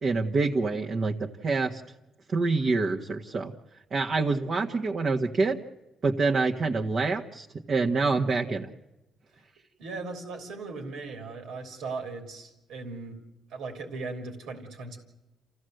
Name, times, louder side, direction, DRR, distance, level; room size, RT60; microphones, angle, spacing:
voice 1, 0.0-1.8 2.3-3.5 3.9-5.6 6.0-8.7, right 3 dB, 50° right, 1 dB, 1.6 m, -26 dB
voice 2, 9.8-13.2 13.5-15.0, right 3 dB, 85° right, 4 dB, 3.5 m, -38 dB
27.5 x 16.0 x 8.0 m, 0.99 s
cardioid pair, 90°, 0 cm